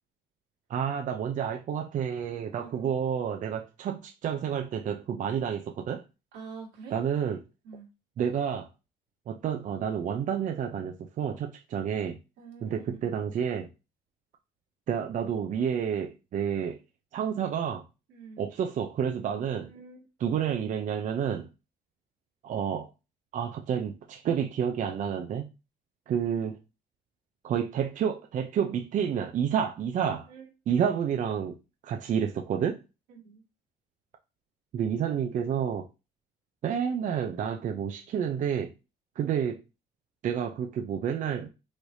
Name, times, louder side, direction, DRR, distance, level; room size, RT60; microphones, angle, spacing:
voice 1, 0.7-6.0 6.9-7.4 8.2-8.7 9.3-12.2 12.6-13.7 14.9-16.8 17.1-17.9 18.4-19.7 20.2-21.5 22.4-22.9 23.3-25.5 26.1-26.6 27.4-30.3 30.7-31.6 31.8-32.8 34.7-35.9 36.6-38.7 39.2-39.6 40.2-41.5, right 8 dB, 50° right, 0.5 m, -29 dB
voice 2, 2.5-3.0 6.3-7.0 7.6-7.9 12.4-13.2 18.1-18.5 19.6-20.1 30.3-30.5 33.1-33.4, right 5 dB, 85° right, 1.7 m, -46 dB
4.8 x 3.2 x 2.7 m
cardioid pair, 110°, 17 cm